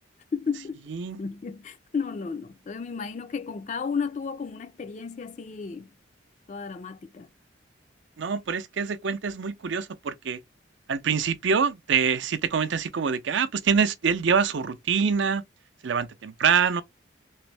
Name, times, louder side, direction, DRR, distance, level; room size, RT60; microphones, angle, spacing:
voice 1, 0.3-0.8 1.2-5.9 6.5-7.3, left 5 dB, 35° left, 0.3 m, -33 dB
voice 2, 0.9-1.2 8.2-10.4 10.9-15.4 15.8-16.8, right 6 dB, 65° right, 0.5 m, -25 dB
3.4 x 3.0 x 3.2 m
head